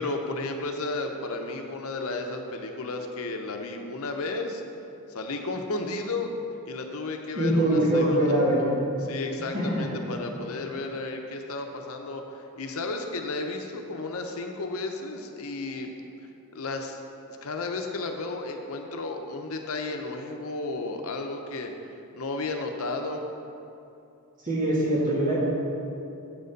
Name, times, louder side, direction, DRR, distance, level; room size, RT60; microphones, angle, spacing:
voice 1, 0.0-4.6 5.1-6.3 6.7-8.3 9.0-12.2 12.6-15.9 16.5-17.0 17.4-21.7 22.1-23.3, left 3 dB, 70° left, 4 dB, 0.8 m, -33 dB
voice 2, 7.3-8.6 9.5-9.8 24.4-25.4, right 1 dB, 35° right, -6 dB, 2.1 m, -23 dB
7.7 x 6.7 x 5.2 m, 2.8 s
head